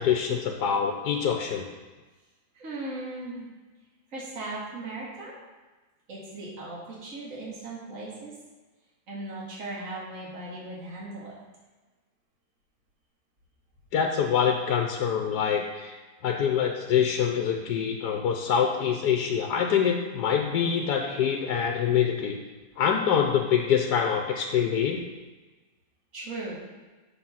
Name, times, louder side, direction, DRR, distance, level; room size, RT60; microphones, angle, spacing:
voice 1, 0.0-1.7 13.9-22.4 22.8-25.0, left 7 dB, 80° left, 3 dB, 1.3 m, -25 dB
voice 2, 2.5-3.5 4.1-5.3 6.1-8.3 9.1-11.3 26.1-26.6, right 2 dB, 50° right, -6 dB, 2.3 m, -37 dB
7.0 x 6.8 x 5.7 m, 1.3 s
omnidirectional pair, 1.7 m